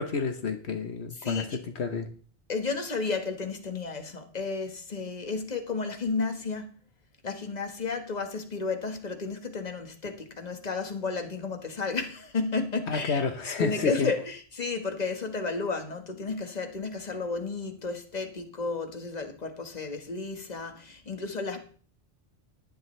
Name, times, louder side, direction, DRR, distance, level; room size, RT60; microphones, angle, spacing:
voice 1, 0.0-2.1 12.9-14.1, left 5 dB, 75° left, 7 dB, 1.3 m, -30 dB
voice 2, 1.1-1.6 2.5-6.7 7.2-13.3 13.6-21.6, left 4 dB, 40° left, 5 dB, 1.6 m, -32 dB
17.0 x 11.0 x 3.3 m, 0.43 s
omnidirectional pair, 1.1 m